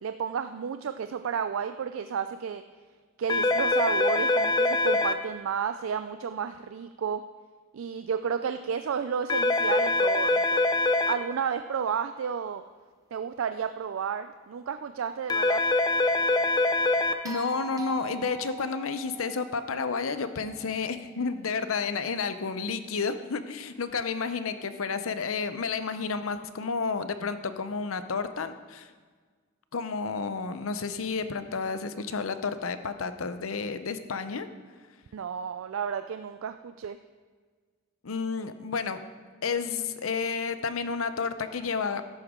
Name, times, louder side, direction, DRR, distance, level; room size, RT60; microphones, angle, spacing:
voice 1, 0.0-2.6 3.2-7.2 7.7-10.6 11.1-12.6 13.1-15.6 35.1-37.0, right 7 dB, 75° right, 10 dB, 0.4 m, -32 dB
sound 1, 3.3-5.1 9.3-11.1 15.3-17.1, left 2 dB, 20° left, 0.5 m, -24 dB
voice 2, 17.2-28.9 29.7-34.5 38.0-39.0 39.4-42.0, left 5 dB, 85° left, 10 dB, 0.7 m, -31 dB
sound 2, 17.2-21.5 23.8-23.9, right 5 dB, 15° right, 0.9 m, -43 dB
13.0 x 11.0 x 3.7 m, 1.5 s
head